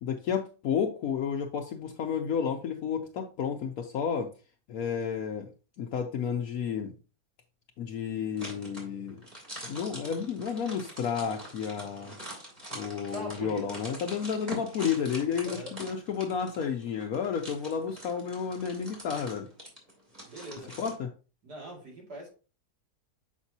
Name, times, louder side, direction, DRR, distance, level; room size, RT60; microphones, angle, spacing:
voice 1, 0.0-4.3 4.7-5.5 5.8-6.9 7.8-9.2 9.6-12.2 12.7-19.5 20.8-21.1, left 7 dB, 65° left, 1.1 m, -31 dB
sound 1, 8.4-21.0, equal, 25° right, 2.5 m, -44 dB
voice 2, 13.1-13.8 15.4-15.7 20.2-20.8 21.4-22.3, right 2 dB, 75° right, 2.8 m, -41 dB
7.3 x 5.2 x 2.7 m
omnidirectional pair, 1.7 m